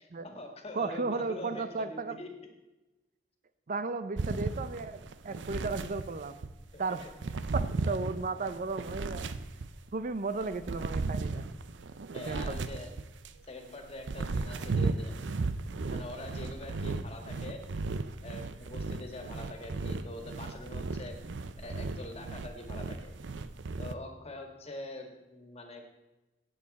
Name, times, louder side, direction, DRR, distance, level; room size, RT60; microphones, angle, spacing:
voice 1, 0.0-2.3 6.7-7.1 12.1-12.9 13.5-15.1 15.9-17.6 18.2-21.2 21.6-23.1 23.8-25.8, left 1 dB, 35° left, 4 dB, 1.8 m, -44 dB
voice 2, 0.7-2.2 3.7-5.0 5.2-6.4 6.8-7.0 7.5-9.2 9.9-11.4 12.3-12.7, right 3 dB, 45° right, 12 dB, 0.5 m, -34 dB
sound 1, 4.2-6.5 7.0-9.9 10.4-13.4 13.8-23.9, right 3 dB, 90° right, 0.6 m, -35 dB
17.0 x 7.8 x 4.2 m, 1.1 s
head